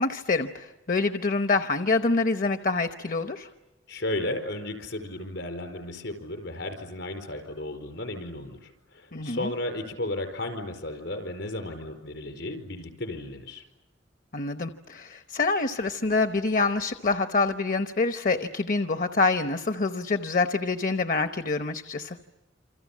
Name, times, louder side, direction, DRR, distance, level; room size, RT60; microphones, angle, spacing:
voice 1, 0.0-3.5 9.1-9.5 14.3-22.2, left 3 dB, 45° left, 9 dB, 0.9 m, -26 dB
voice 2, 3.9-13.6, left 1 dB, 70° left, 7 dB, 4.6 m, -34 dB
28.0 x 26.5 x 7.4 m, 1.1 s
head